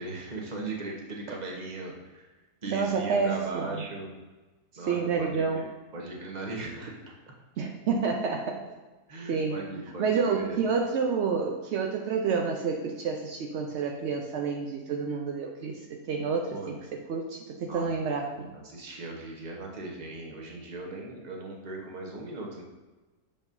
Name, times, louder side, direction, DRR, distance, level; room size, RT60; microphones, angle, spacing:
voice 1, 0.0-2.3 2.6-4.1 4.8-5.7 5.9-7.3 9.1-10.6 16.5-17.0 17.6-18.2 18.5-22.6, right 2 dB, 35° right, 0 dB, 0.9 m, -38 dB
voice 2, 2.7-3.9 4.9-5.6 7.6-8.7 9.3-9.7 10.0-18.5, right 5 dB, 80° right, 2 dB, 0.6 m, -29 dB
6.9 x 5.3 x 2.6 m, 1.2 s
omnidirectional pair, 1.8 m